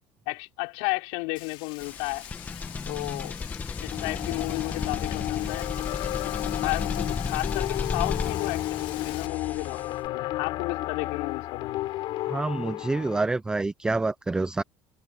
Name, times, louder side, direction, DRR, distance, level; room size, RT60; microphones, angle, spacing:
voice 1, 0.3-2.2 2.9-3.4 3.8-5.7 6.6-11.9, left 30 dB, 90° left, 5.6 m, -33 dB
Frying (food), 1.4-9.3, left 20 dB, 70° left, 3.9 m, -44 dB
sound 1, 1.8-10.1, left 4 dB, 15° left, 1.5 m, -34 dB
sound 2, 3.9-13.2, left 16 dB, 55° left, 6.2 m, -32 dB
voice 2, 12.3-14.6, right 3 dB, 10° right, 0.5 m, -27 dB
cardioid pair, 160°, 10 cm